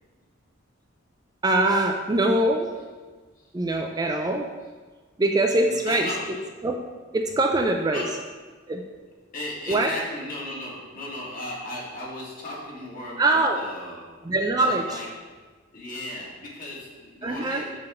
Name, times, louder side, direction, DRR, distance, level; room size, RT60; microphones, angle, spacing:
voice 1, 1.4-2.7 3.5-4.5 5.2-6.1 6.6-6.8 7.1-8.0 8.7-8.8 9.7-9.9 13.2-13.6 14.2-15.0 17.2-17.6, right 2 dB, 20° right, 3 dB, 0.4 m, -23 dB
voice 2, 3.3-3.7 5.6-6.3 7.9-8.1 9.3-14.1 14.5-15.1 15.7-17.8, left 1 dB, 45° left, -5 dB, 2.1 m, -36 dB
6.7 x 3.6 x 6.2 m, 1.4 s
head